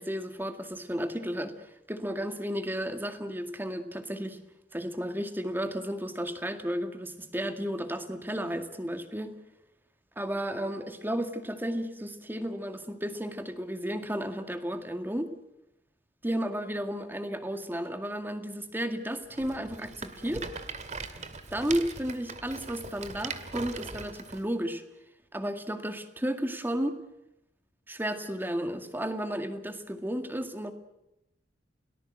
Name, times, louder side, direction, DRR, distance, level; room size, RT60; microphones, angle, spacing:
voice 1, 0.0-1.6 1.9-4.4 4.7-9.3 10.2-15.3 16.2-20.5 21.5-24.8 25.3-27.0 27.9-30.7, equal, 10° right, 8 dB, 2.1 m, -33 dB
Rattle, 19.3-24.4, right 4 dB, 40° right, 2.0 m, -40 dB
29.5 x 18.5 x 7.7 m, 0.87 s
head